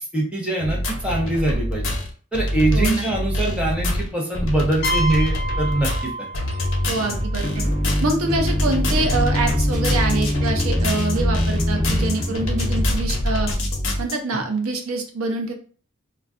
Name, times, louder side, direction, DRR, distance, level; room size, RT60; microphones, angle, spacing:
voice 1, 0.1-1.8 2.3-6.1 14.3-14.4, right 2 dB, 5° right, -3 dB, 0.6 m, -23 dB
sound 1, 0.6-14.1, left 1 dB, 80° left, 0.7 m, -25 dB
voice 2, 2.7-3.1 6.9-7.7 8.0-13.5 14.0-15.5, right 3 dB, 85° right, 4 dB, 0.6 m, -25 dB
sound 2, 4.8-8.5, right 1 dB, 45° left, 0.4 m, -30 dB
sound 3, 6.9-13.0, left 1 dB, 35° right, 0.9 m, -23 dB
2.2 x 2.2 x 3.5 m, 0.42 s
head